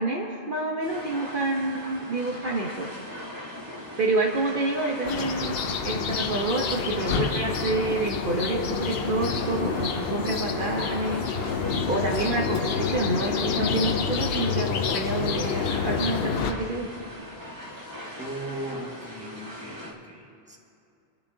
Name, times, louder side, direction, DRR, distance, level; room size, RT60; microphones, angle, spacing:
voice 1, 0.0-2.9 4.0-5.6 5.8-11.2 11.9-16.9, right 2 dB, 50° right, -1 dB, 1.1 m, -28 dB
sound 1, 0.8-19.9, equal, 25° right, 2.9 m, -41 dB
sound 2, 5.0-16.5, left 5 dB, 65° left, 0.8 m, -28 dB
voice 2, 18.2-20.6, right 1 dB, 5° right, -2 dB, 1.7 m, -38 dB
26.5 x 9.8 x 2.8 m, 2.6 s
omnidirectional pair, 1.1 m